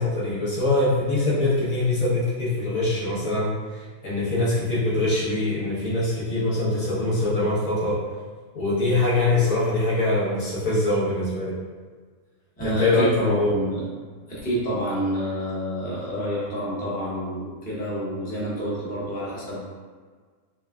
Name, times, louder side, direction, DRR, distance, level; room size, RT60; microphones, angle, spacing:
voice 1, 0.0-8.0 8.5-11.5 12.6-13.5, left 2 dB, 75° left, -8 dB, 1.6 m, -23 dB
voice 2, 12.6-13.9 14.3-19.7, equal, 10° left, -8 dB, 0.6 m, -28 dB
3.8 x 3.3 x 2.4 m, 1.5 s
omnidirectional pair, 1.5 m